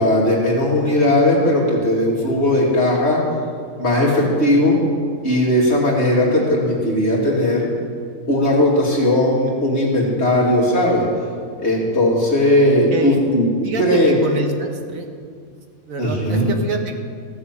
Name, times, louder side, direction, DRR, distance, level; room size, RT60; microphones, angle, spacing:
voice 1, 0.0-3.2 3.8-4.8 5.2-7.7 8.3-11.1 11.6-13.5 13.8-14.2 16.0-16.5, left 1 dB, 50° left, -4 dB, 2.8 m, -17 dB
voice 2, 13.6-15.1 15.9-16.9, right 3 dB, 75° right, 4 dB, 1.6 m, -26 dB
15.0 x 7.2 x 7.4 m, 2.1 s
omnidirectional pair, 1.4 m